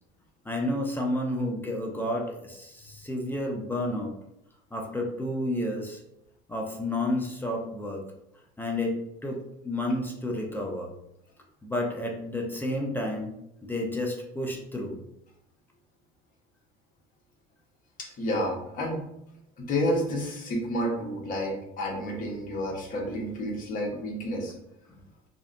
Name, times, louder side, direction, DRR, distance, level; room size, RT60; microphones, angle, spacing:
voice 1, 0.5-4.1 4.7-6.0 6.5-8.0 8.6-9.4 9.6-10.9 11.6-13.4 13.7-15.0, left 1 dB, 10° left, 1 dB, 0.5 m, -30 dB
voice 2, 18.0-19.0 19.6-24.5, equal, 45° left, -1 dB, 0.9 m, -30 dB
2.6 x 2.1 x 2.4 m, 0.81 s
supercardioid pair, 90°, 19 cm